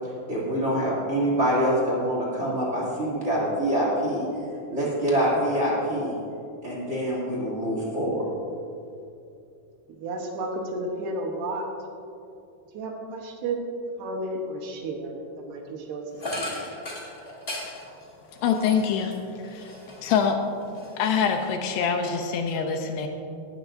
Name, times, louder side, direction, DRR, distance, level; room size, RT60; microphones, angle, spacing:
voice 1, 0.3-4.3 4.7-6.1 6.6-8.2, equal, 20° right, -5 dB, 2.1 m, -25 dB
voice 2, 9.9-11.7 12.7-13.7 14.0-16.0 16.4-16.5, right 2 dB, 75° right, 1 dB, 3.1 m, -32 dB
sound 1, 16.2-20.2 20.6-21.7, left 1 dB, 25° left, 1.0 m, -37 dB
voice 3, 18.4-19.2 19.4-19.7 20.0-20.4 21.0-23.1, left 6 dB, 80° left, 4 dB, 2.7 m, -25 dB
18.5 x 12.5 x 2.7 m, 2.6 s
omnidirectional pair, 5.1 m